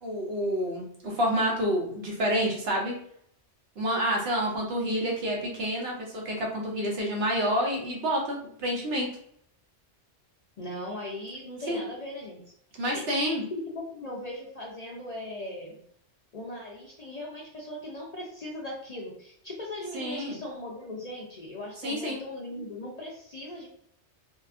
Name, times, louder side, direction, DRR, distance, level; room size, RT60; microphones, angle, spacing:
voice 1, 0.0-3.0 3.8-9.1 11.7-11.8 12.8-13.4 19.9-20.4 21.8-22.2, equal, 65° right, -2 dB, 1.0 m, -28 dB
voice 2, 10.6-12.4 12.9-15.8 16.3-23.7, left 1 dB, 50° left, -3 dB, 0.5 m, -38 dB
2.7 x 2.4 x 2.4 m, 0.67 s
omnidirectional pair, 1.2 m